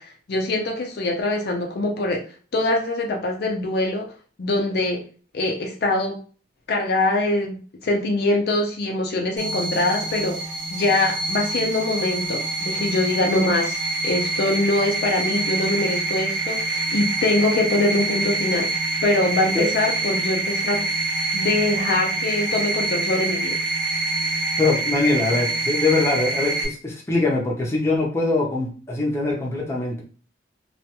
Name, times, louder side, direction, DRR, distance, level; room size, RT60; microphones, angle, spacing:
voice 1, 0.0-2.3 2.5-4.1 4.4-5.0 5.3-6.2 6.7-10.4 10.7-18.7 19.0-20.9 21.3-23.6, left 2 dB, 60° left, 1 dB, 0.4 m, -23 dB
sound 1, 9.4-26.7, right 2 dB, 80° right, 0.8 m, -26 dB
voice 2, 24.6-30.0, left 2 dB, 15° left, -3 dB, 0.6 m, -22 dB
2.3 x 2.2 x 2.8 m, 0.40 s
head